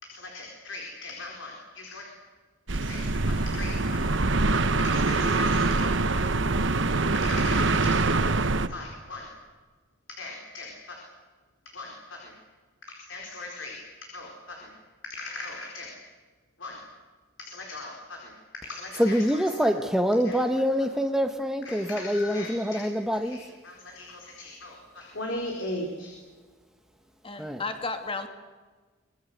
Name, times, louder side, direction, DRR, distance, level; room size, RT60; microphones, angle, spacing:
voice 1, 0.0-2.1 2.7-4.1 4.8-6.4 7.1-8.0 8.7-9.3 10.1-11.0 11.6-12.3 12.9-14.7 15.0-15.9 16.6-16.8 17.4-19.7 20.2-20.6 21.6-22.9 23.1-26.2, left 2 dB, 65° left, 1 dB, 4.5 m, -39 dB
sound 1, 2.7-8.7, right 3 dB, 65° right, 1.1 m, -24 dB
voice 2, 19.0-23.4 27.4-27.6, equal, ahead, 6 dB, 1.2 m, -25 dB
voice 3, 27.2-28.3, left 3 dB, 25° left, 7 dB, 2.5 m, -33 dB
25.5 x 21.5 x 8.1 m, 1.4 s
head